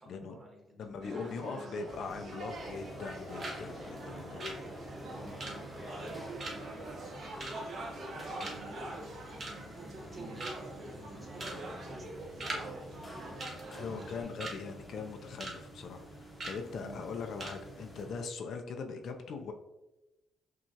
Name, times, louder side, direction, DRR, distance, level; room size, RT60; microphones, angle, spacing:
voice 1, 0.0-2.1 4.1-4.6 5.0-7.5 8.3-12.1 13.9-14.4 16.8-17.1, right 1 dB, 20° right, -1 dB, 1.3 m, -54 dB
voice 2, 0.8-4.6 13.7-19.5, left 5 dB, 65° left, 5 dB, 0.4 m, -41 dB
sound 1, 1.0-14.2, right 1 dB, 60° right, 0.8 m, -44 dB
sound 2, 1.9-18.3, equal, 15° left, 0.8 m, -49 dB
sound 3, 2.5-3.1 3.4-3.6 3.9-8.1 8.4-8.8 9.2-9.8 10.1-10.2 10.4-10.8 11.3-11.6 11.9-12.6 12.9-13.1 13.4-14.6 15.0-15.6 15.8-16.0 16.4-16.6 17.0-17.1 17.4-17.6 17.9-18.0, right 2 dB, 45° right, 1.0 m, -42 dB
5.8 x 2.3 x 2.8 m, 0.97 s
cardioid pair, 90°, 0 cm